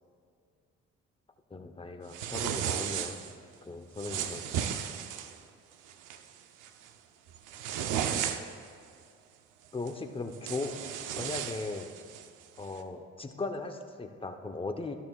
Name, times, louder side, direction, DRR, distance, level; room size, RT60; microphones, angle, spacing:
voice 1, 1.5-3.2 3.7-4.7 9.7-10.7 11.2-11.9 12.6-14.9, left 3 dB, 20° left, 5 dB, 0.9 m, -38 dB
sound 1, 2.1-3.3 4.0-5.4 5.9-6.2 6.6-6.9 7.3-8.7 9.9-10.0 10.3-12.3, right 9 dB, 90° right, 0.7 m, -34 dB
13.0 x 12.0 x 2.4 m, 2.3 s
cardioid pair, 90°, 30 cm